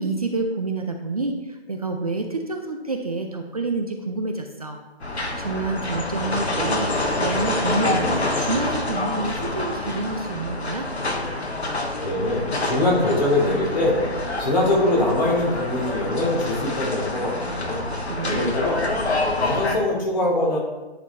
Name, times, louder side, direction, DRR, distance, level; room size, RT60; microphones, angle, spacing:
voice 1, 0.0-4.8 5.4-10.9 18.0-18.6, right 3 dB, 35° right, 4 dB, 0.5 m, -28 dB
sound 1, 5.0-19.8, left 2 dB, 90° left, 1.3 m, -27 dB
voice 2, 12.0-14.0 14.4-17.9 18.2-18.8 19.4-20.6, left 1 dB, 45° left, -3 dB, 2.8 m, -23 dB
10.0 x 4.4 x 4.1 m, 1.1 s
figure-of-eight pair, 160°, 32 cm